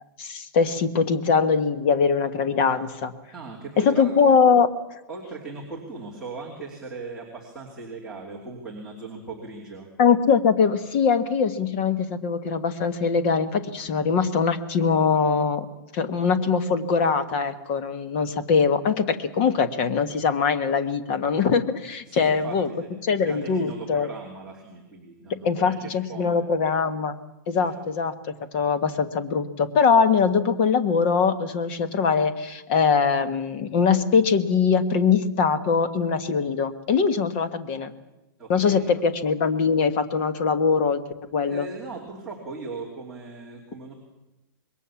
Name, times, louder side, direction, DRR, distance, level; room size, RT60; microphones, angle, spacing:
voice 1, 0.2-3.1 3.8-4.7 10.0-15.7 15.9-22.7 23.0-24.1 25.4-27.2 27.5-37.9 38.5-41.0 41.3-41.7, left 5 dB, 30° left, 10 dB, 1.4 m, -22 dB
voice 2, 3.3-4.4 5.1-9.9 22.1-26.5 27.6-27.7 38.4-39.0 41.4-43.9, right 3 dB, 5° right, -6 dB, 2.8 m, -38 dB
26.0 x 22.0 x 7.2 m, 1.0 s
hypercardioid pair, 175°, 12 cm